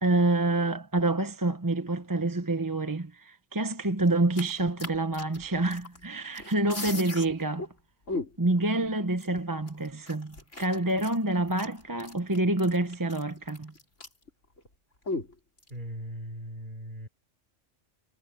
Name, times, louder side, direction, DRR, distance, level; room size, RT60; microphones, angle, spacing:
voice 1, 0.0-7.7 8.4-13.7, right 2 dB, 20° right, 0.9 m, -27 dB
sound 1, 4.1-6.0 6.3-7.3 7.6-7.7 8.1-8.6 9.2-9.3 9.7-14.3 14.6-14.7 15.1-15.7, left 2 dB, 85° left, 5.3 m, -37 dB
voice 2, 15.7-17.1, equal, 40° right, 4.3 m, -39 dB
omnidirectional pair, 1.2 m